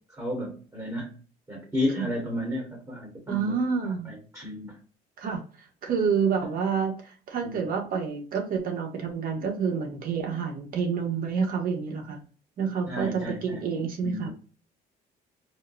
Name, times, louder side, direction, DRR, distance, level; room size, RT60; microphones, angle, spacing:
voice 1, 0.1-1.2 1.5-3.5 3.8-4.8 7.4-7.7 12.9-13.7 14.0-14.3, left 1 dB, 15° right, 0 dB, 1.3 m, -33 dB
voice 2, 3.3-4.1 5.2-5.4 5.8-12.2 12.6-14.3, right 6 dB, 55° right, 2 dB, 1.2 m, -28 dB
4.4 x 2.2 x 2.4 m, 0.38 s
cardioid pair, 110°, 17 cm